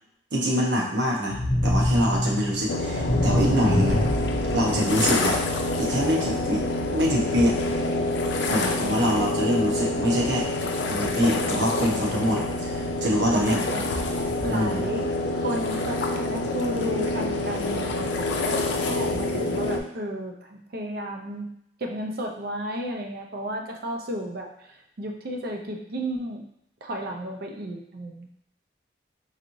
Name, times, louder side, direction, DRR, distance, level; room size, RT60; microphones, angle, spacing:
voice 1, 0.3-4.0 4.5-5.3 5.8-6.6 6.9-7.6 8.5-10.5 10.9-13.6 14.5-14.8, equal, 85° right, -2 dB, 0.9 m, -25 dB
sound 1, 1.3-5.3, left 1 dB, 15° left, 0.3 m, -25 dB
sound 2, 2.7-19.8, left 2 dB, 85° left, 0.5 m, -27 dB
voice 2, 13.3-13.9 14.4-15.1 15.3-18.5 18.8-21.5 21.8-26.4 26.8-28.3, equal, 60° right, 2 dB, 0.6 m, -33 dB
4.0 x 3.0 x 2.6 m, 0.75 s
head